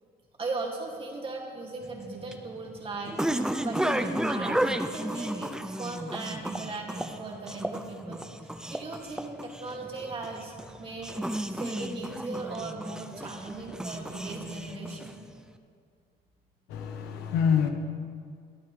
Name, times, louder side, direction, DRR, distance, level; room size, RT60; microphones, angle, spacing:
voice 1, 0.4-5.5 5.8-11.2 11.5-15.2, right 3 dB, 35° right, -1 dB, 2.5 m, -38 dB
sound 1, 1.8-15.4, right 1 dB, 5° right, 0.6 m, -33 dB
voice 2, 16.7-17.7, left 7 dB, 90° left, 5 dB, 1.3 m, -26 dB
25.0 x 8.9 x 3.4 m, 2.1 s
cardioid pair, 110°, 17 cm